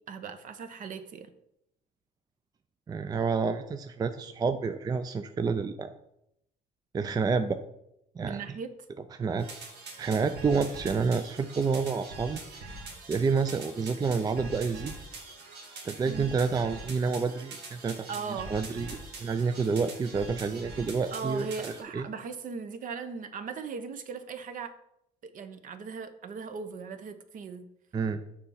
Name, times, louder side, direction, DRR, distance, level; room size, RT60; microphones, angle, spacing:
voice 1, 0.1-1.3 8.2-8.7 16.0-16.3 18.1-18.5 21.1-24.7 25.3-27.7, right 5 dB, 50° right, 10 dB, 0.8 m, -38 dB
voice 2, 2.9-5.9 6.9-7.6 8.2-8.4 9.1-9.5 10.0-12.8 13.1-15.0 15.8-18.1 18.5-22.1 27.9-28.2, right 5 dB, 25° right, 9 dB, 0.4 m, -29 dB
sound 1, 9.4-21.8, right 2 dB, 85° right, 1.7 m, -43 dB
6.8 x 4.2 x 5.6 m, 0.79 s
cardioid pair, 110°, 17 cm